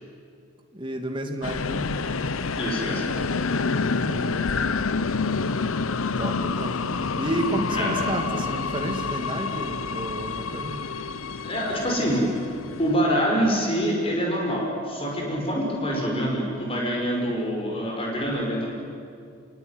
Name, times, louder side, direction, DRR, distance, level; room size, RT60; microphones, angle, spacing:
voice 1, 0.7-1.9 3.9-4.6 6.2-6.8 7.2-10.8, right 1 dB, 25° right, 3 dB, 2.5 m, -31 dB
sound 1, 1.4-13.0, left 4 dB, 85° left, 0.8 m, -28 dB
voice 2, 2.6-3.0 7.7-7.9 11.4-12.3 12.8-18.7, equal, 25° left, -1 dB, 5.3 m, -25 dB
28.5 x 19.0 x 9.8 m, 2.4 s
head